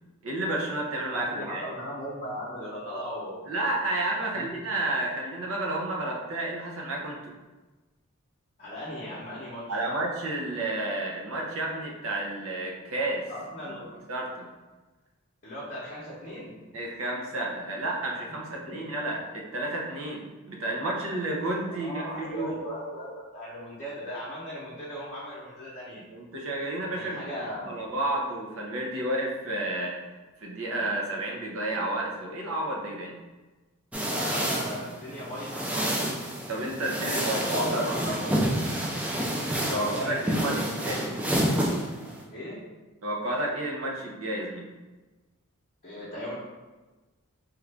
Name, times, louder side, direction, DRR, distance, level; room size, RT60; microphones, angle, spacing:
voice 1, 0.2-1.6 3.5-7.3 9.7-13.3 13.7-13.8 14.1-14.5 16.7-22.5 26.1-27.3 27.6-30.0 30.4-33.1 36.5-38.1 39.7-41.0 43.0-44.7, right 1 dB, 70° right, -1 dB, 0.7 m, -31 dB
voice 2, 1.1-3.4 4.1-4.6 8.6-9.8 13.3-13.9 15.4-16.6 18.7-18.8 21.6-26.0 26.9-27.8 34.1-36.2 36.9-38.7 39.7-41.2 42.3-42.6 45.8-46.3, equal, 40° left, -8 dB, 0.8 m, -38 dB
sound 1, 33.9-42.2, right 1 dB, 5° right, 0.3 m, -29 dB
3.2 x 2.4 x 3.3 m, 1.2 s
head